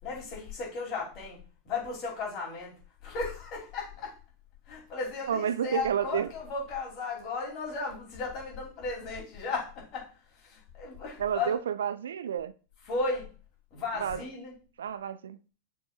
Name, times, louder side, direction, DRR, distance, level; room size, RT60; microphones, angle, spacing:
voice 1, 0.0-1.4 1.6-2.7 3.0-4.1 4.7-10.1 10.4-11.6 12.9-13.3 13.7-14.5, left 3 dB, 35° left, 3.4 m, -35 dB
voice 2, 5.3-6.3 11.2-12.5 14.0-14.2 14.8-15.4, right 8 dB, 65° right, 0.4 m, -30 dB
6.8 x 5.4 x 2.5 m
figure-of-eight pair, 90°, 0 cm